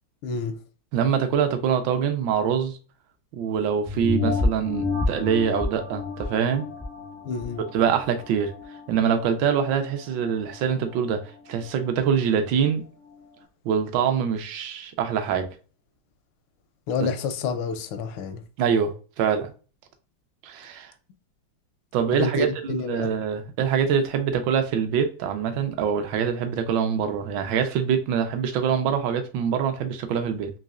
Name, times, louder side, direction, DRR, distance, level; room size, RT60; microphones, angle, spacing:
voice 1, 0.2-0.6 7.2-7.6 16.9-18.4 22.1-23.1, left 4 dB, 85° left, 1.5 m, -28 dB
voice 2, 0.9-2.8 3.3-6.6 7.7-8.5 8.9-11.2 11.5-12.8 13.6-15.5 18.6-19.5 20.4-20.9 21.9-30.5, right 7 dB, 70° right, 1.2 m, -24 dB
sound 1, 3.9-8.8 9.3-9.4, left 3 dB, 15° right, 0.4 m, -29 dB
4.1 x 3.0 x 2.4 m
omnidirectional pair, 2.3 m